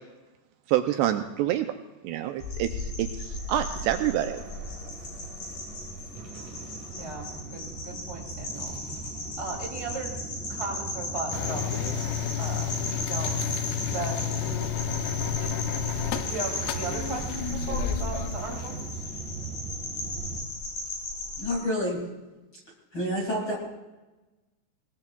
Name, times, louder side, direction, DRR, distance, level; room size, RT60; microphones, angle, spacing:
voice 1, 0.7-1.7 2.0-4.4, right 12 dB, 80° right, 7 dB, 2.6 m, -27 dB
sound 1, 2.4-21.5, left 2 dB, 55° left, 5.9 m, -36 dB
sound 2, 3.3-20.5, right 5 dB, 60° right, 2.4 m, -39 dB
voice 2, 6.9-8.8 9.4-10.1 10.5-13.4 13.9-14.7 15.4-15.5 16.1-18.8, right 3 dB, 10° right, -2 dB, 1.7 m, -37 dB
sound 3, 11.3-18.9, left 12 dB, 85° left, 2.1 m, -32 dB
voice 3, 21.4-22.0 22.9-23.6, equal, 35° left, -3 dB, 2.0 m, -28 dB
20.5 x 19.5 x 2.4 m, 1.1 s
omnidirectional pair, 5.2 m